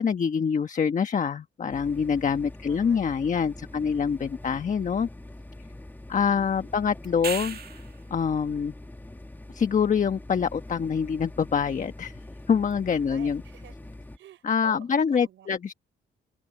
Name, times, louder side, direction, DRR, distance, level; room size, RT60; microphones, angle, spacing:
voice 1, 0.0-5.1 6.1-7.6 8.1-8.7 9.5-12.2 12.5-13.4 14.4-15.7, left 6 dB, 40° left, 1.2 m, -25 dB
dishwasher under, 1.7-14.2, left 1 dB, 10° left, 1.7 m, -44 dB
voice 2, 2.7-3.9 6.3-6.9 13.1-15.6, right 11 dB, 75° right, 4.5 m, -51 dB
sound 1, 7.0-8.0 12.7-12.8, right 7 dB, 50° right, 2.1 m, -34 dB
open air
cardioid pair, 90°, 20 cm